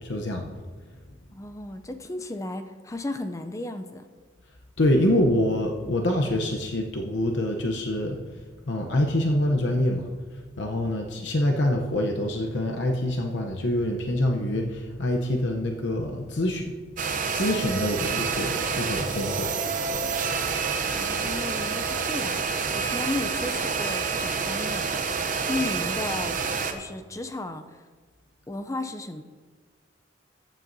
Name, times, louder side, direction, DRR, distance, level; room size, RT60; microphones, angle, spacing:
voice 1, 0.0-0.5 4.8-8.2 8.7-10.1 10.6-16.7 17.3-19.5, left 1 dB, 65° left, 2 dB, 0.8 m, -25 dB
voice 2, 1.3-4.1 20.9-26.4 26.7-27.8 28.5-29.2, left 2 dB, 15° left, 8 dB, 0.4 m, -34 dB
sound 1, 17.0-26.7, right 5 dB, 45° right, 0.7 m, -28 dB
14.5 x 9.0 x 2.7 m, 1.5 s
head